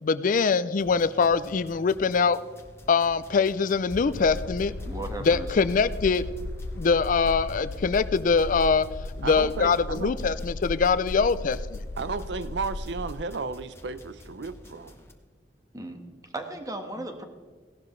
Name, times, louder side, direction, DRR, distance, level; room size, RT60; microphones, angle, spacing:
voice 1, 0.0-2.4 2.9-4.7 5.2-6.3 6.8-8.9 9.2-11.8, left 5 dB, 50° left, 15 dB, 0.4 m, -23 dB
sound 1, 0.8-15.1, left 1 dB, 15° left, 1.2 m, -50 dB
sound 2, 3.9-13.2, left 2 dB, 90° left, 0.6 m, -36 dB
voice 2, 4.8-5.5 15.7-16.0 16.3-17.2, right 1 dB, 20° right, 5 dB, 1.4 m, -35 dB
voice 3, 9.2-10.1 12.0-15.0, right 4 dB, 75° right, 14 dB, 0.6 m, -33 dB
17.0 x 11.5 x 3.2 m, 1.5 s
head